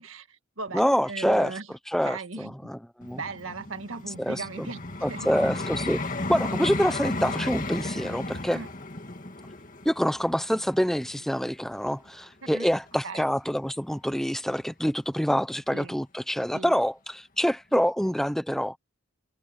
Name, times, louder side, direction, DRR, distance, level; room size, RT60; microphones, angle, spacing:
voice 1, 0.0-1.7 2.0-2.7 3.1-4.8 5.1-5.3 8.5-8.7 12.4-12.7 13.0-13.3 15.7-16.0 16.5-16.7, right 3 dB, 85° right, 1.9 m, -38 dB
voice 2, 0.7-1.6 1.9-3.2 4.2-4.7 5.0-6.0 6.3-8.6 9.8-18.8, equal, ahead, 0.7 m, -26 dB
Vehicle, 3.0-12.1 12.7-12.9, left 2 dB, 40° left, 2.2 m, -34 dB
head